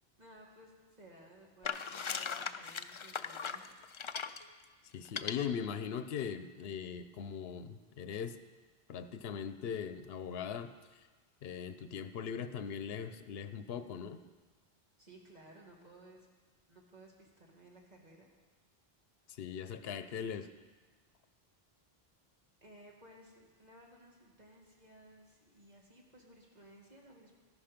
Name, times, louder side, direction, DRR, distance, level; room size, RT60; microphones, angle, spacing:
voice 1, 0.2-3.7 15.0-16.3 16.7-18.3 22.6-27.3, right 1 dB, 45° right, -1 dB, 2.2 m, -58 dB
sound 1, 1.6-4.4 5.0-5.3, left 6 dB, 45° left, 0.4 m, -38 dB
voice 2, 4.9-8.4 8.9-10.7 11.4-14.2 19.4-20.5, left 7 dB, 75° left, 10 dB, 0.9 m, -40 dB
14.0 x 11.5 x 5.1 m, 1.3 s
omnidirectional pair, 1.0 m